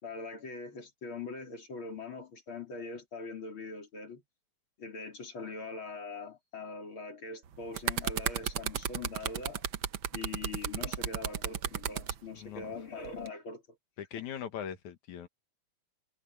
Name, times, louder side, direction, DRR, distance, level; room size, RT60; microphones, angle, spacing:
voice 1, 0.0-4.2 4.8-9.6 10.1-13.6, left 3 dB, 45° left, 4.4 m, -42 dB
sound 1, 7.5-12.2 13.0-13.3, right 9 dB, 60° right, 1.3 m, -33 dB
voice 2, 12.3-12.7 14.0-15.3, left 9 dB, 80° left, 2.9 m, -40 dB
omnidirectional pair, 3.4 m